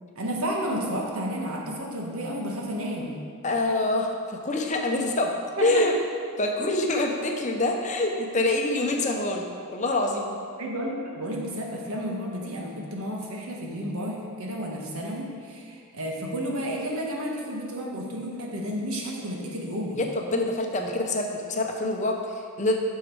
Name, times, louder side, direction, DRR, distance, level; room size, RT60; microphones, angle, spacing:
voice 1, 0.1-3.2 5.6-5.8 10.6-20.0, equal, 75° right, -1 dB, 1.4 m, -31 dB
voice 2, 3.4-5.3 5.6-5.9 6.4-9.5 9.7-10.3 20.0-22.8, left 2 dB, 35° left, 2 dB, 0.7 m, -25 dB
8.3 x 6.5 x 4.7 m, 2.2 s
head